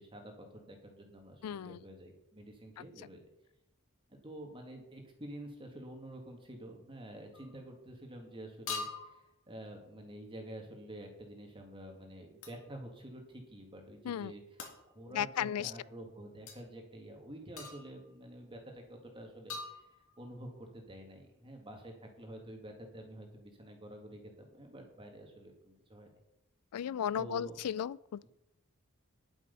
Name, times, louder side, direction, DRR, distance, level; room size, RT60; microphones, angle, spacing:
voice 1, 0.0-3.2 4.1-14.4 14.9-19.8 20.2-26.1 27.1-27.6, right 1 dB, 25° right, 2.1 m, -49 dB
voice 2, 1.4-1.8 2.8-2.9 14.0-14.3 15.1-15.7 26.7-28.3, left 9 dB, 90° left, 0.4 m, -35 dB
sound 1, 7.3-7.6 8.7-9.3 12.4-12.6 14.6-14.9 16.5-16.6 17.6-18.1 19.5-20.3, left 4 dB, 65° left, 2.3 m, -43 dB
10.5 x 8.2 x 5.5 m
head